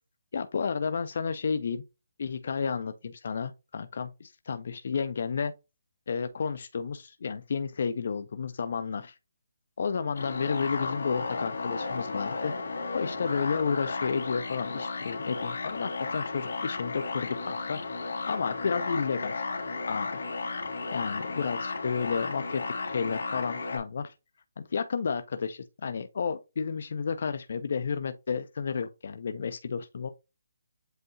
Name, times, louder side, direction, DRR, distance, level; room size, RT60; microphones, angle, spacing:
voice 1, 0.3-1.8 2.2-5.5 6.1-9.1 9.8-12.5 12.9-19.5 19.9-20.2 20.9-24.1 24.6-30.1, left 5 dB, 45° left, 0.4 m, -32 dB
sound 1, 10.1-23.8, left 3 dB, 75° left, 1.9 m, -34 dB
7.7 x 2.7 x 2.6 m
hypercardioid pair, 175°, 0 cm